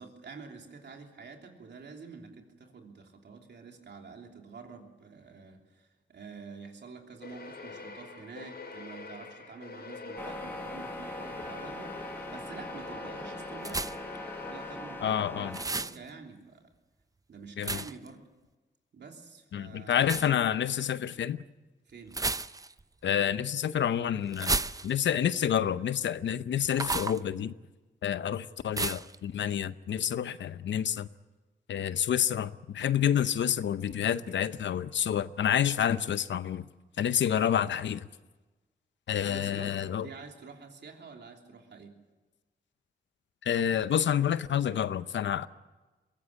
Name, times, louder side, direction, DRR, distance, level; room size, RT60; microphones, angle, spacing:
voice 1, 0.0-13.9 14.2-16.7 17.3-18.3 18.9-20.2 21.9-22.2 39.1-41.9, right 5 dB, 70° right, 3.2 m, -48 dB
sound 1, 7.2-15.5, left 4 dB, 65° left, 4.3 m, -45 dB
sound 2, 10.2-15.7, left 1 dB, 10° left, 1.5 m, -41 dB
sound 3, 13.6-14.2 15.5-16.0 17.6-18.1 20.0-20.3 22.1-22.8 24.3-25.2 26.7-27.2 28.7-29.2, right 3 dB, 20° right, 0.6 m, -32 dB
voice 2, 15.0-15.6 17.6-17.8 19.5-21.4 23.0-27.5 28.0-31.1 31.7-36.7 37.0-38.0 39.1-40.0 43.4-45.5, left 9 dB, 85° left, 0.7 m, -28 dB
22.5 x 16.5 x 8.7 m
cardioid pair, 75°, 18 cm